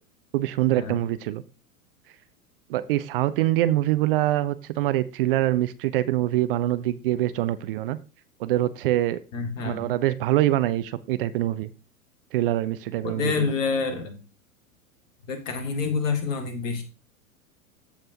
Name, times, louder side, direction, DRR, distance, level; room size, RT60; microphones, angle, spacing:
voice 1, 0.3-1.4 2.7-8.0 8.4-9.2 9.6-11.7 12.3-13.5, right 14 dB, 40° right, 14 dB, 0.5 m, -24 dB
voice 2, 9.3-9.9 13.0-14.2 15.2-16.8, left 4 dB, 60° left, 6 dB, 2.1 m, -27 dB
14.0 x 5.4 x 2.8 m, 0.31 s
figure-of-eight pair, 95°, 44 cm